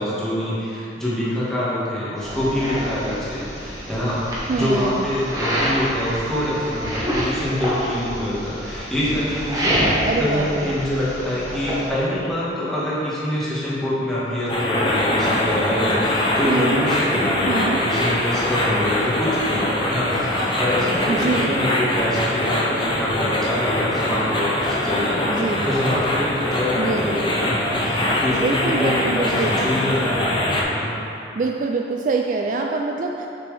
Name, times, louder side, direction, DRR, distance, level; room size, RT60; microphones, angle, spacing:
voice 1, 0.0-30.2 30.7-30.9, left 1 dB, 5° left, -10 dB, 1.5 m, -25 dB
sound 1, 2.2-11.9, equal, 20° right, 1.3 m, -27 dB
voice 2, 4.5-5.1 10.0-10.8 16.5-16.9 17.5-17.8 21.1-21.7 25.2-25.7 26.7-27.1 28.4-29.6 31.3-33.3, right 4 dB, 45° right, 1 dB, 0.3 m, -25 dB
sound 2, 14.5-30.6, left 1 dB, 25° left, 0.7 m, -23 dB
6.8 x 6.0 x 3.4 m, 2.7 s
head